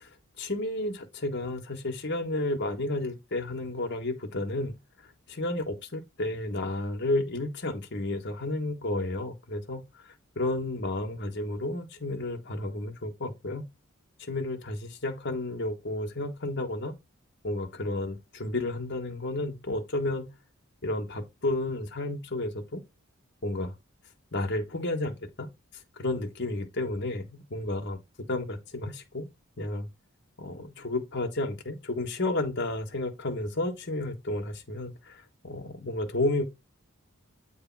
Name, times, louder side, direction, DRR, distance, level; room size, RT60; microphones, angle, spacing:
voice 1, 0.4-4.8 5.3-9.8 10.4-13.6 14.2-16.9 17.4-20.3 20.8-22.8 23.4-23.7 24.3-25.5 26.0-28.0 28.3-29.3 29.6-29.9 30.4-36.4, left 2 dB, 55° left, 1.3 m, -32 dB
8.2 x 3.3 x 4.6 m
head